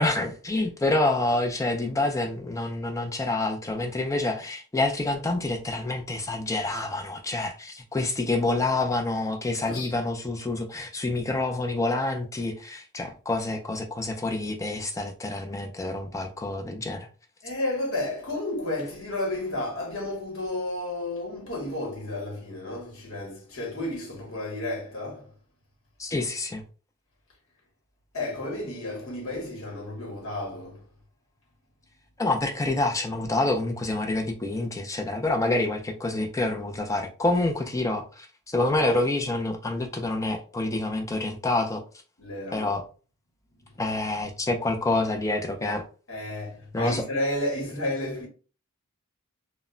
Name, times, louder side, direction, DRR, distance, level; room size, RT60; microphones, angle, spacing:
voice 1, 0.0-17.1 26.0-26.6 32.2-41.8 42.5-42.8 43.8-45.8 46.7-47.0, left 2 dB, 15° left, 0.3 m, -27 dB
voice 2, 17.4-25.3 28.1-30.8 42.2-42.8 46.1-48.3, left 1 dB, 65° left, 1.0 m, -32 dB
2.1 x 2.1 x 3.6 m
head